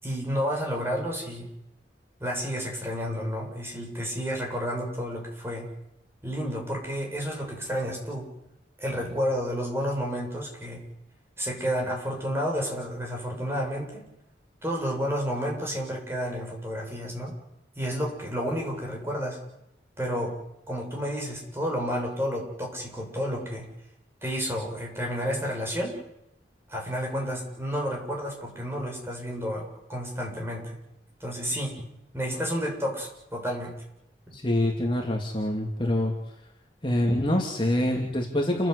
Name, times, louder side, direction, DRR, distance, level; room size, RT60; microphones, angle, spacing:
voice 1, 0.0-1.5 2.2-5.7 6.2-8.3 8.8-10.9 11.4-14.1 14.6-17.3 17.8-19.4 20.0-20.4 20.7-23.7 24.2-26.0 26.7-30.8 31.2-31.8 32.1-33.7, equal, 15° right, 0 dB, 7.6 m, -31 dB
voice 2, 34.3-36.1 36.8-38.7, left 1 dB, 30° left, 1 dB, 2.9 m, -25 dB
30.0 x 16.0 x 8.3 m, 0.81 s
head